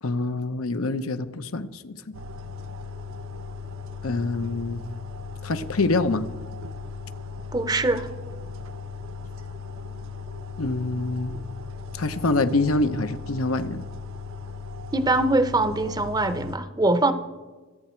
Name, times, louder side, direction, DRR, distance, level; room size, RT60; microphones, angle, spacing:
voice 1, 0.0-2.1 4.0-4.8 5.4-6.3 10.6-11.3 11.9-13.8, left 2 dB, 75° left, 10 dB, 0.8 m, -26 dB
sound 1, 2.1-16.6, left 4 dB, 65° right, 0.9 m, -37 dB
voice 2, 7.5-8.1 14.9-17.1, right 2 dB, 20° right, 11 dB, 0.7 m, -22 dB
25.5 x 8.5 x 4.5 m, 1.3 s
head